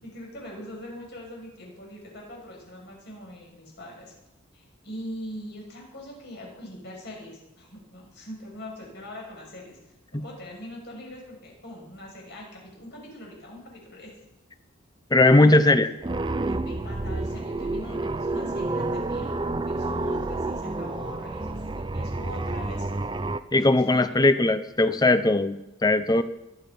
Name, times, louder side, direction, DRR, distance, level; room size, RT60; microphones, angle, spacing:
voice 1, 0.0-4.1 4.5-14.1 15.4-15.8 16.5-22.9 23.5-24.3 26.1-26.2, equal, 55° left, -1 dB, 6.8 m, -42 dB
voice 2, 15.1-15.9 23.5-26.2, left 2 dB, 20° left, 12 dB, 0.7 m, -19 dB
sound 1, 16.0-23.4, right 2 dB, 20° right, 0.6 m, -29 dB
22.0 x 10.5 x 5.3 m, 0.96 s
head